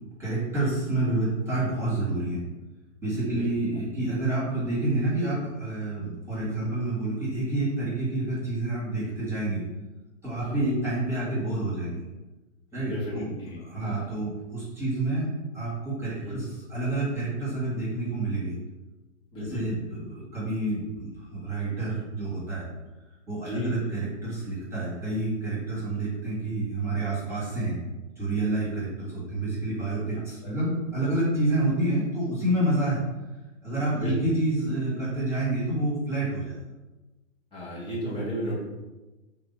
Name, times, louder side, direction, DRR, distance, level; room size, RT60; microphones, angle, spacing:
voice 1, 0.2-2.4 3.0-9.6 10.2-12.0 12.7-13.3 13.6-18.6 19.4-22.7 23.3-27.8 28.2-33.0 33.6-36.6, right 2 dB, 5° right, -9 dB, 1.4 m, -28 dB
voice 2, 12.7-14.1 16.1-16.4 19.3-19.7 23.4-23.9 30.4-30.6 33.9-34.2 37.5-38.6, equal, 15° left, -7 dB, 1.0 m, -34 dB
3.4 x 2.7 x 4.0 m, 1.1 s
figure-of-eight pair, 125°, 39 cm